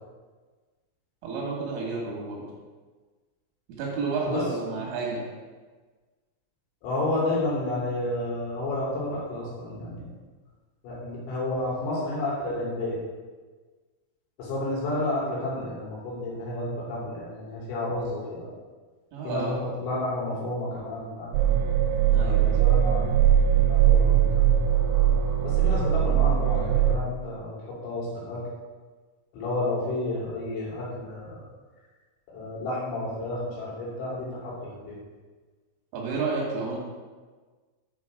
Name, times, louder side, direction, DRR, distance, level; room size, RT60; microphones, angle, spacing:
voice 1, 1.2-2.4 3.8-5.3 19.1-19.5 22.1-22.7 35.9-36.8, right 3 dB, 75° right, -3 dB, 4.5 m, -30 dB
voice 2, 6.8-10.1 10.8-13.0 14.4-18.5 19.2-21.4 22.2-23.2 23.7-24.5 25.4-28.5 29.3-31.5 32.3-35.0, left 2 dB, 90° left, -6 dB, 5.5 m, -31 dB
sound 1, 21.3-27.0, right 10 dB, 90° right, 3.3 m, -21 dB
11.0 x 5.3 x 4.8 m, 1.4 s
omnidirectional pair, 5.8 m